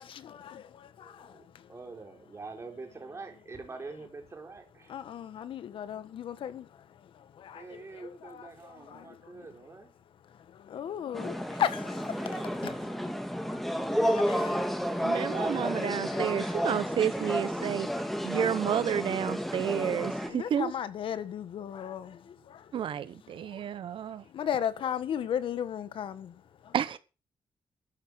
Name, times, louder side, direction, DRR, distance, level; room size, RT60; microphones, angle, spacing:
voice 1, 0.0-2.0 2.3-2.4 2.7-4.0 4.9-9.9 10.2-14.6 15.6-16.6 17.9-18.4 19.7-22.7 23.2-23.7 24.2-26.7, left 9 dB, 85° left, 1.5 m, -38 dB
voice 2, 1.0-1.4 1.7-4.9 7.5-9.9 12.2-12.6 13.9-14.4 14.9-15.8 16.2-17.7, right 3 dB, 30° right, 4.3 m, -45 dB
sound 1, 11.1-20.3, equal, ahead, 2.2 m, -31 dB
voice 3, 15.0-17.9 18.2-20.7 22.7-24.2 26.7-27.0, right 9 dB, 75° right, 1.1 m, -30 dB
13.5 x 9.5 x 6.4 m
cardioid pair, 115°, 9 cm